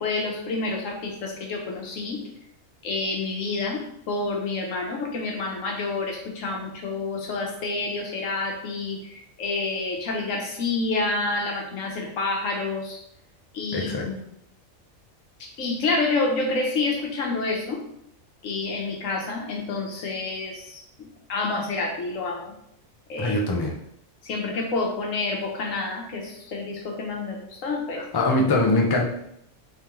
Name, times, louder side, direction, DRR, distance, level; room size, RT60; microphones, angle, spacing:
voice 1, 0.0-2.2 2.8-13.0 13.5-14.2 15.4-17.8 18.4-22.5 23.1-23.4 24.2-28.0, left 3 dB, 85° left, 1 dB, 1.2 m, -28 dB
voice 2, 13.7-14.0 23.2-23.7 28.1-29.1, left 2 dB, 35° left, 0 dB, 0.4 m, -22 dB
3.6 x 3.3 x 2.9 m, 0.74 s
omnidirectional pair, 1.3 m